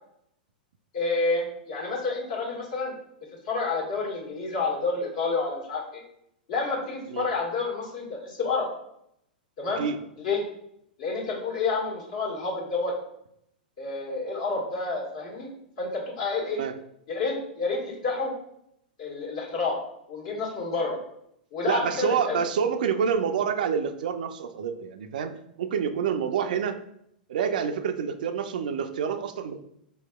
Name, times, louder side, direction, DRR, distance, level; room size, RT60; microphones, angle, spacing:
voice 1, 0.9-2.9 3.4-6.0 6.5-8.7 9.6-9.8 10.2-10.4 11.0-12.9 13.8-15.5 15.8-16.6 17.1-18.3 19.0-19.8 20.1-21.0 21.5-22.4, left 3 dB, 55° left, -4 dB, 1.4 m, -29 dB
voice 2, 21.7-26.8 27.3-29.6, right 7 dB, 65° right, 9 dB, 0.3 m, -27 dB
4.6 x 2.8 x 2.2 m, 0.74 s
figure-of-eight pair, 100°, 5 cm